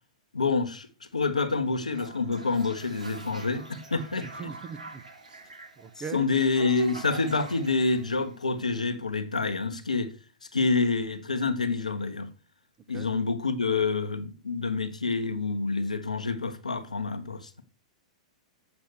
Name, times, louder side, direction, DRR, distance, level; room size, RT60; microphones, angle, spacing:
voice 1, 0.3-0.9 1.1-4.3 6.1-10.1 10.5-12.3 12.9-17.5, left 4 dB, 90° left, 1.1 m, -27 dB
Toilet flush, 1.9-8.8, right 3 dB, 85° right, 1.9 m, -45 dB
voice 2, 4.2-6.3 12.9-13.1, right 7 dB, 25° right, 1.2 m, -41 dB
8.2 x 6.2 x 6.7 m
hypercardioid pair, 105°, 4 cm